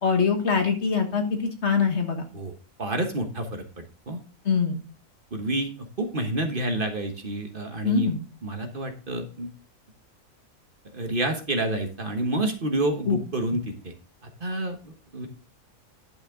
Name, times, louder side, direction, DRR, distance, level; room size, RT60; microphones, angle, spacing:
voice 1, 0.0-2.3 4.4-4.8 7.8-8.2 13.1-13.2, left 5 dB, 55° left, 5 dB, 1.7 m, -23 dB
voice 2, 2.8-4.2 5.3-8.1 8.4-9.5 10.9-13.9 14.4-15.3, right 1 dB, 40° right, 5 dB, 1.4 m, -29 dB
10.5 x 6.2 x 3.7 m, 0.35 s
omnidirectional pair, 1.4 m